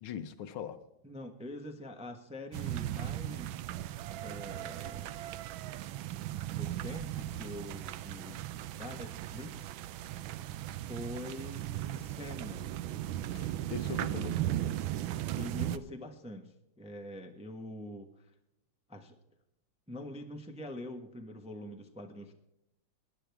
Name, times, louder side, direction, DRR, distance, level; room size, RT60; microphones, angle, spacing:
voice 1, 0.0-0.8 13.3-14.5, left 8 dB, 80° left, 1.7 m, -41 dB
voice 2, 1.0-3.9 4.2-5.1 6.5-9.8 10.9-12.7 13.9-14.5 15.4-18.3 18.9-19.2 19.9-22.3, left 1 dB, 5° right, 0.7 m, -45 dB
sound 1, 2.5-15.8, right 13 dB, 80° right, 1.4 m, -37 dB
18.5 x 10.5 x 3.5 m
omnidirectional pair, 2.3 m